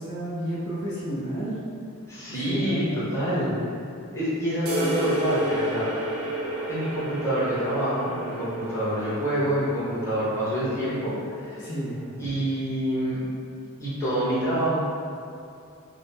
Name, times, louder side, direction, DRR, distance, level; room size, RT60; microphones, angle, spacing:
voice 1, 0.0-1.6 2.5-3.1 11.6-12.0, right 1 dB, 50° left, -8 dB, 0.7 m, -31 dB
voice 2, 2.1-3.5 4.1-5.9 6.7-11.7 12.2-13.2 13.8-14.8, right 1 dB, 15° left, -11 dB, 0.9 m, -27 dB
sound 1, 4.7-12.2, equal, 65° right, 0.6 m, -31 dB
3.8 x 2.0 x 4.0 m, 2.6 s
head